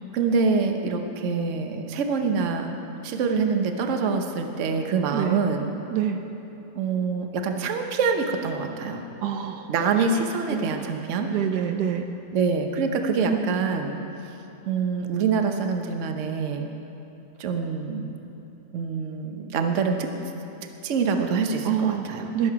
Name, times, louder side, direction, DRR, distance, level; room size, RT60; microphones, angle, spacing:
voice 1, 0.1-2.7 3.0-5.7 6.7-9.0 9.7-11.3 12.3-14.0 14.7-16.6 17.4-18.1 18.7-20.1 20.8-22.3, right 5 dB, 55° right, 5 dB, 1.1 m, -25 dB
voice 2, 5.1-5.4 5.9-6.2 9.2-9.7 10.5-10.9 11.3-12.1 13.3-13.9 21.6-22.1 22.3-22.5, right 9 dB, 75° right, 6 dB, 1.2 m, -27 dB
21.5 x 7.7 x 4.7 m, 3.0 s
omnidirectional pair, 1.8 m